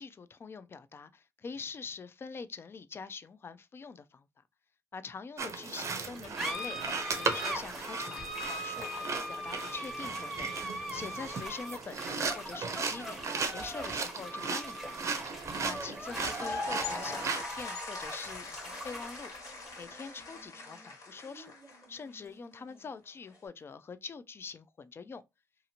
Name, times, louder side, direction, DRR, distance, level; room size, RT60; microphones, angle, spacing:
voice 1, 0.0-4.3 4.9-10.5 10.9-13.2 13.5-15.0 15.6-19.3 19.8-21.5 21.9-25.2, left 5 dB, 35° left, 0.3 m, -44 dB
sound 1, 5.4-17.4, right 4 dB, 45° right, 0.6 m, -37 dB
sound 2, 6.0-22.9, equal, 5° right, 0.8 m, -42 dB
sound 3, 16.0-22.0, left 2 dB, 55° left, 1.3 m, -41 dB
2.7 x 2.5 x 2.7 m
cardioid pair, 100°, 7 cm